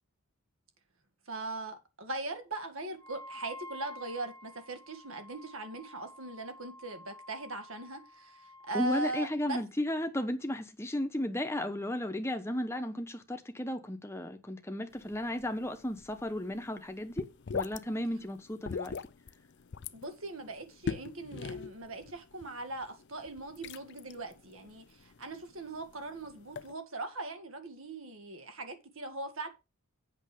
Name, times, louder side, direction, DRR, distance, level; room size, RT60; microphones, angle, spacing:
voice 1, 1.3-9.6 19.9-29.5, right 2 dB, 65° right, 1.9 m, -40 dB
Wind instrument woodwind instrument, 3.0-8.8, left 1 dB, 80° right, 3.1 m, -50 dB
voice 2, 8.7-17.3 17.5-19.0, left 1 dB, 10° left, 0.9 m, -34 dB
sound 1, 14.9-26.7, left 5 dB, 55° left, 0.5 m, -43 dB
8.1 x 6.4 x 5.0 m
head